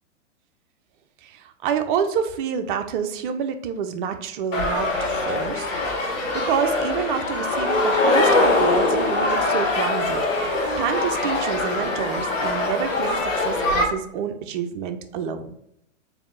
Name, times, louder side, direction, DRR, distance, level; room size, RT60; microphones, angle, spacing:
voice 1, 1.2-5.7 6.3-10.2 10.8-15.5, right 7 dB, 45° right, 7 dB, 0.5 m, -28 dB
sound 1, 4.5-13.8, left 2 dB, 85° left, 1.2 m, -22 dB
3.5 x 2.6 x 3.7 m, 0.73 s
hypercardioid pair, 125°, 37 cm